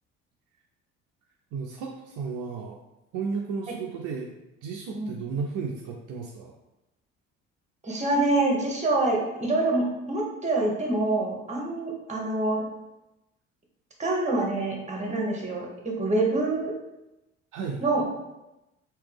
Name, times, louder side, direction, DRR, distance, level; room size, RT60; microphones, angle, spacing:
voice 1, 1.5-2.8 3.1-4.3 4.6-6.5 17.5-17.8, right 5 dB, 60° right, 0 dB, 0.6 m, -33 dB
voice 2, 7.8-12.6 14.0-16.7 17.8-18.1, right 2 dB, 20° right, -1 dB, 1.2 m, -26 dB
3.2 x 2.9 x 3.4 m, 0.95 s
hypercardioid pair, 60°, 36 cm